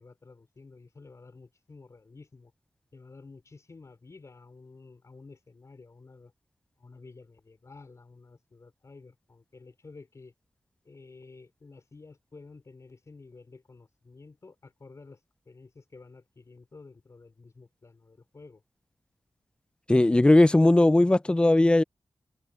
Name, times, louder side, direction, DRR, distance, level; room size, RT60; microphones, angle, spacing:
voice 1, 0.0-2.5 2.9-6.3 6.8-10.3 10.9-15.2 15.5-18.6, left 3 dB, 40° left, 5.1 m, -51 dB
voice 2, 19.9-21.8, left 2 dB, 15° left, 0.4 m, -19 dB
open air
wide cardioid pair, 145°, 8 cm